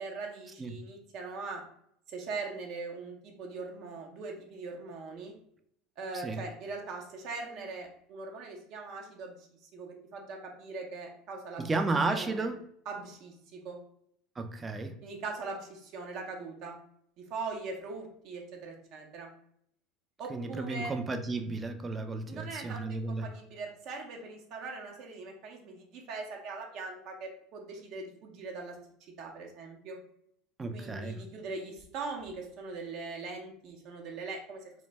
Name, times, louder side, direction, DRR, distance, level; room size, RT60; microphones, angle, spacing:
voice 1, 0.0-1.6 2.1-5.3 6.0-11.7 12.1-12.5 12.9-13.8 15.0-16.8 17.2-19.3 20.2-20.9 22.2-28.8 29.2-30.0 30.7-34.6, right 3 dB, 55° right, 1 dB, 0.7 m, -41 dB
voice 2, 11.6-12.6 14.4-15.0 20.3-23.3 30.6-31.2, right 3 dB, 25° right, 7 dB, 0.4 m, -33 dB
2.6 x 2.1 x 3.1 m, 0.70 s
hypercardioid pair, 75°, 0 cm